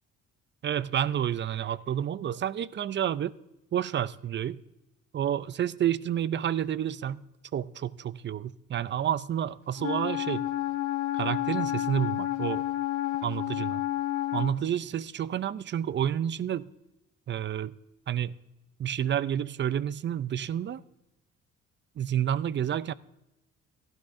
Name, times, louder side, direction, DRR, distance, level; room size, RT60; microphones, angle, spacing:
voice 1, 0.6-3.3 3.7-4.6 5.1-7.2 7.5-10.5 11.1-12.6 13.2-13.8 14.3-16.7 17.3-17.7 18.1-18.3 18.8-20.8 22.0-22.9, right 10 dB, 40° right, 0.4 m, -29 dB
Wind instrument woodwind instrument, 9.8-14.6, left 14 dB, 65° left, 1.0 m, -30 dB
17.0 x 12.0 x 2.6 m
cardioid pair, 90°, 30 cm